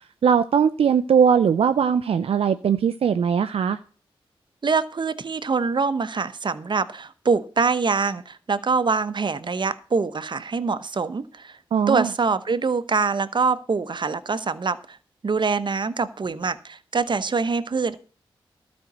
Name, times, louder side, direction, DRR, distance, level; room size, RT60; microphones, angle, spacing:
voice 1, 0.2-3.8 11.7-12.1, right 7 dB, 75° right, 11 dB, 0.5 m, -20 dB
voice 2, 4.6-11.6 11.9-15.0 15.2-18.0, right 4 dB, 50° right, 13 dB, 0.9 m, -24 dB
12.5 x 5.3 x 7.9 m, 0.39 s
cardioid pair, 55°, 10 cm